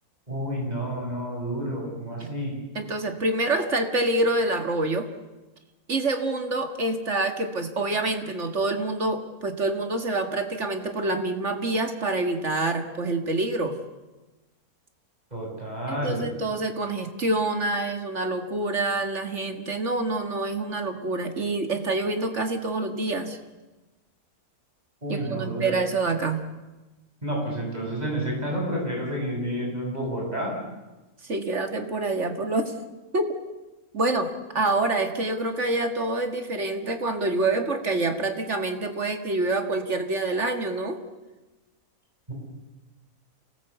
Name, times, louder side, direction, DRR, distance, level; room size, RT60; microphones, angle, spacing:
voice 1, 0.3-2.5 15.3-16.3 25.0-25.7 27.2-30.5 42.3-42.4, right 1 dB, 25° right, -2 dB, 7.4 m, -30 dB
voice 2, 2.8-5.1 5.9-13.8 15.9-23.4 25.1-26.4 31.2-32.7 33.1-33.3 33.9-41.0, right 2 dB, 50° right, 6 dB, 2.3 m, -26 dB
28.0 x 18.5 x 8.3 m, 1.1 s
omnidirectional pair, 1.6 m